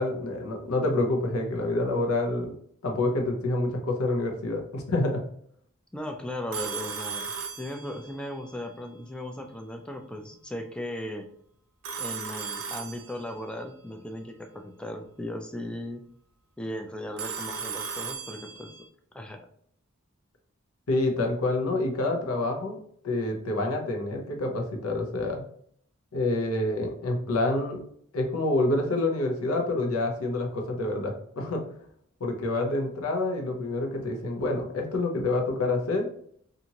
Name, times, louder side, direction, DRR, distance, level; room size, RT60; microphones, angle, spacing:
voice 1, 0.0-2.5 2.8-5.2 20.9-22.8 23.0-25.4 26.1-27.8 28.1-31.6 32.2-36.1, left 2 dB, 85° left, 2 dB, 0.7 m, -27 dB
voice 2, 5.9-7.3 7.6-11.3 12.0-16.0 16.6-18.7 19.1-19.4, left 1 dB, 5° left, 4 dB, 0.3 m, -37 dB
Telephone, 6.5-8.3 11.8-13.5 17.2-18.9, right 6 dB, 75° right, 0.5 m, -36 dB
2.8 x 2.5 x 2.8 m, 0.64 s
head